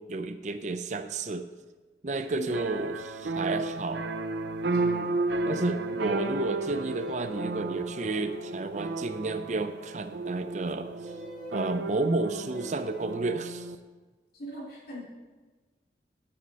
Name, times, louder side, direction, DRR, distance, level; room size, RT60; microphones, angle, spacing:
voice 1, 0.0-1.5 2.0-4.0 4.7-5.2 5.5-11.1 11.5-13.7, right 3 dB, 40° right, 10 dB, 0.5 m, -32 dB
voice 2, 2.3-2.7 4.7-4.8 14.3-15.0, left 1 dB, 55° left, -4 dB, 3.0 m, -40 dB
sound 1, 2.5-13.8, right 2 dB, 80° right, 0.6 m, -33 dB
sound 2, 6.6-7.5 8.7-9.3 11.0-11.7 12.5-13.2, left 2 dB, 5° left, 2.0 m, -45 dB
11.0 x 9.5 x 4.1 m, 1.3 s
head